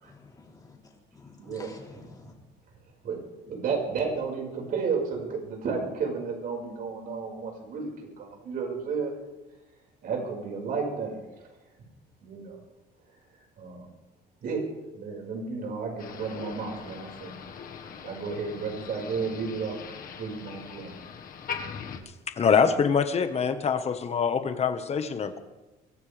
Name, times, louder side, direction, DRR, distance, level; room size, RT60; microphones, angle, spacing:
voice 1, 0.0-2.3, left 3 dB, 20° left, -1 dB, 3.7 m, -50 dB
voice 2, 1.4-2.0 3.0-3.2 3.5-9.1 10.0-11.2 12.2-12.6 13.6-13.9 14.4-14.6 14.9-17.3 18.0-19.8 20.2-20.9, right 5 dB, 60° right, 0 dB, 5.6 m, -32 dB
Motor vehicle (road), 16.0-22.0, left 6 dB, 55° left, 1.6 m, -41 dB
voice 3, 22.4-25.4, left 6 dB, 40° left, 8 dB, 1.5 m, -24 dB
23.0 x 15.5 x 3.5 m, 1.1 s
cardioid pair, 110°, 17 cm